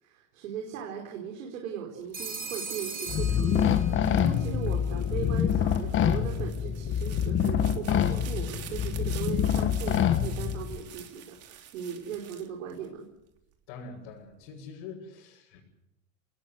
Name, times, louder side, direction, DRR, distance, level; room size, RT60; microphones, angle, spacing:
voice 1, 0.0-13.0, right 8 dB, 90° right, 1 dB, 4.8 m, -38 dB
sound 1, 2.0-13.4 13.9-14.5, right 10 dB, 40° right, 3.4 m, -49 dB
Telephone, 2.1-4.2, right 4 dB, 25° right, 7.1 m, -38 dB
sound 2, 3.1-10.8, left 9 dB, 30° left, 1.6 m, -26 dB
voice 2, 13.7-15.6, left 4 dB, 60° left, -3 dB, 6.8 m, -44 dB
27.5 x 20.0 x 8.1 m, 0.87 s
supercardioid pair, 140°, 39 cm